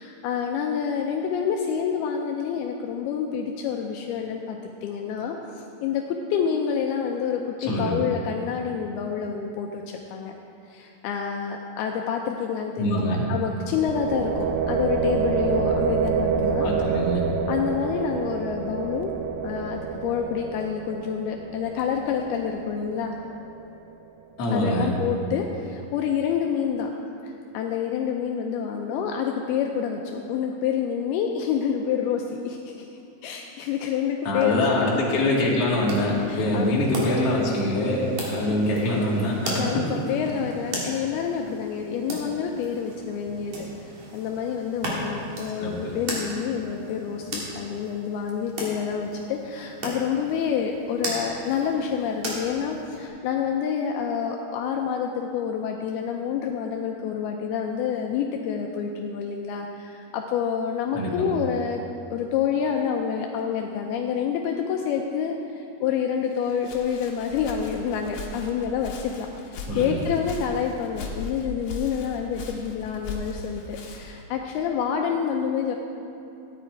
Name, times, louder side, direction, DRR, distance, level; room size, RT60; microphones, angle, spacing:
voice 1, 0.0-10.3 10.7-16.7 17.5-19.1 19.4-23.2 24.5-26.9 27.2-32.9 33.2-34.8 36.3-36.7 37.0-37.3 38.4-38.5 39.6-61.8 62.1-75.8, left 7 dB, 80° left, 2 dB, 2.5 m, -28 dB
voice 2, 7.6-7.9 12.8-13.3 16.6-17.2 24.4-24.9 34.2-40.1 45.6-46.0 60.9-61.3 69.7-70.0, left 1 dB, 45° left, -5 dB, 2.6 m, -24 dB
sound 1, 13.7-23.5, right 6 dB, 80° right, 2.2 m, -28 dB
sound 2, 35.7-53.1, right 1 dB, 50° right, 3.0 m, -36 dB
Walk footsteps, 66.3-74.2, left 3 dB, 65° left, 2.7 m, -38 dB
14.5 x 10.0 x 4.6 m, 2.7 s
omnidirectional pair, 4.7 m